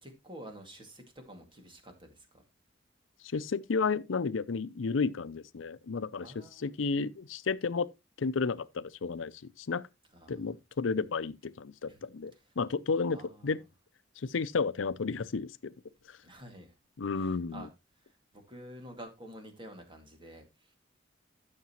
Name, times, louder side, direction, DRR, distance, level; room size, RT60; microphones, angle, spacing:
voice 1, 0.0-2.4 6.2-6.7 10.1-10.4 11.9-12.0 13.1-13.5 16.2-16.7 17.2-17.7 18.0-20.8, equal, 25° right, 2.2 m, -49 dB
voice 2, 3.2-7.9 8.2-9.9 10.3-13.6 14.2-15.7 16.1-16.2 17.0-17.7, left 4 dB, 90° left, 0.6 m, -32 dB
13.5 x 6.7 x 3.0 m
head